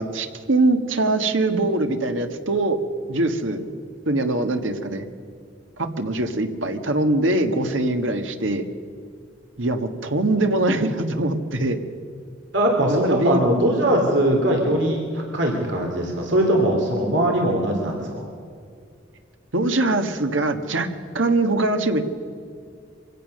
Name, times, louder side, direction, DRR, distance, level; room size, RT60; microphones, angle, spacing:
voice 1, 0.0-2.8 3.1-3.6 4.0-5.0 5.8-8.6 9.6-11.8 12.9-13.7 19.5-20.9 21.1-22.0, right 2 dB, 85° right, 7 dB, 1.5 m, -22 dB
voice 2, 12.5-18.3, right 1 dB, 70° right, 1 dB, 2.9 m, -21 dB
24.0 x 16.5 x 6.5 m, 2.3 s
head